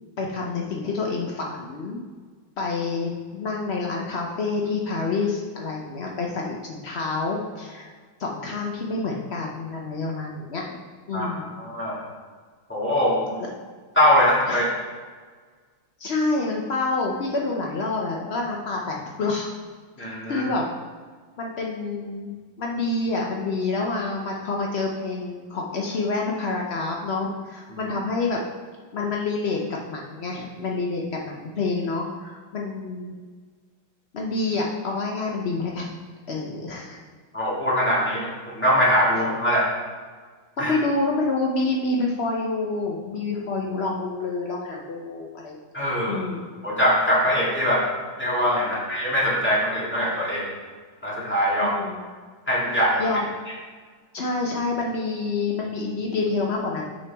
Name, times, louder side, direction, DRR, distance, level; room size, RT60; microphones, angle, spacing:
voice 1, 0.2-2.0 2.6-7.9 8.2-10.8 11.1-11.5 14.5-14.6 16.0-19.5 20.3-20.7 21.4-28.4 28.9-29.6 29.9-33.1 34.1-35.9 36.3-37.0 40.6-45.6 46.1-46.4 48.7-48.8 51.6-52.0 53.0-53.3 54.1-56.8, left 3 dB, 85° left, -1 dB, 0.5 m, -27 dB
voice 2, 11.6-12.0 12.7-13.4 14.0-14.7 20.0-20.5 27.7-27.9 37.3-39.7 40.6-40.7 45.7-46.2 46.6-47.9 48.2-50.5 51.0-51.8 52.5-53.0, equal, 5° left, -6 dB, 1.7 m, -22 dB
7.7 x 6.0 x 3.4 m, 1.5 s
omnidirectional pair, 2.2 m